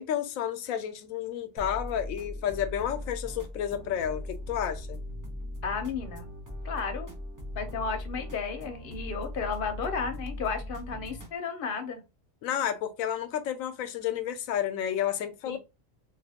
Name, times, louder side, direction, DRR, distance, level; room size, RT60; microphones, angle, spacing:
voice 1, 0.0-5.0 12.4-15.6, left 10 dB, 85° left, 1.0 m, -31 dB
sound 1, 1.6-11.3, left 1 dB, 20° right, 0.6 m, -39 dB
voice 2, 5.6-6.3 6.6-7.1 7.6-12.0 15.4-15.6, left 5 dB, 50° left, 0.8 m, -33 dB
3.3 x 2.5 x 2.8 m
omnidirectional pair, 1.4 m